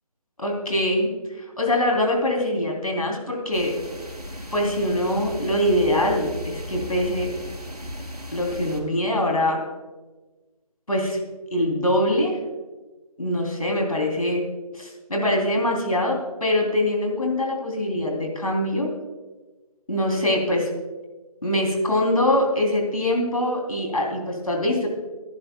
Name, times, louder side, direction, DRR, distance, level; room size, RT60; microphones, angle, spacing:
voice 1, 0.4-3.7 4.5-7.3 8.3-9.6 10.9-11.2 11.5-12.3 13.2-14.4 14.7-18.9 19.9-20.7 21.4-24.9, left 1 dB, 70° left, 1 dB, 3.4 m, -23 dB
sound 1, 3.5-8.8, equal, 80° right, 2.9 m, -36 dB
22.5 x 10.5 x 2.3 m, 1.2 s
figure-of-eight pair, 160°, 20 cm